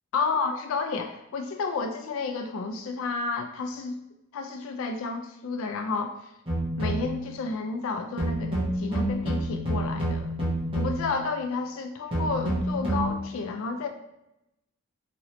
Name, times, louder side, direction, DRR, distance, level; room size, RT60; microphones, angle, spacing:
voice 1, 0.1-4.0 4.3-6.3 6.8-10.3 10.7-13.9, left 4 dB, 70° left, 6 dB, 0.3 m, -31 dB
sound 1, 6.5-7.2 8.2-11.2 12.1-13.2, right 1 dB, 25° right, 1.0 m, -28 dB
2.9 x 2.9 x 2.8 m, 0.87 s
head